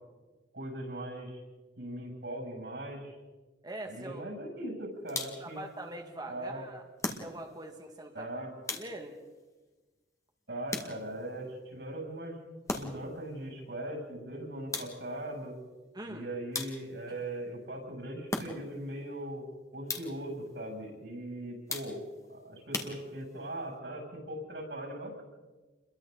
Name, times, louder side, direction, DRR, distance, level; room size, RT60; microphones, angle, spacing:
voice 1, 0.5-1.4 1.8-3.1 3.8-5.6 6.3-6.6 8.1-8.5 10.5-12.4 12.7-15.5 16.1-19.4 19.7-25.2, right 1 dB, 75° right, 0 dB, 7.8 m, -40 dB
voice 2, 3.6-4.2 5.4-6.8 7.2-8.3 8.7-9.2 15.9-16.3, right 1 dB, 25° right, 3 dB, 1.9 m, -43 dB
sound 1, 5.1-5.6 7.0-7.7 8.7-9.3 10.7-11.3 12.7-13.2 14.7-15.2 16.5-17.1 18.3-18.9 19.9-20.3 21.7-22.2 22.7-23.5, left 2 dB, 20° left, 2.1 m, -38 dB
29.5 x 22.5 x 4.1 m, 1.3 s
head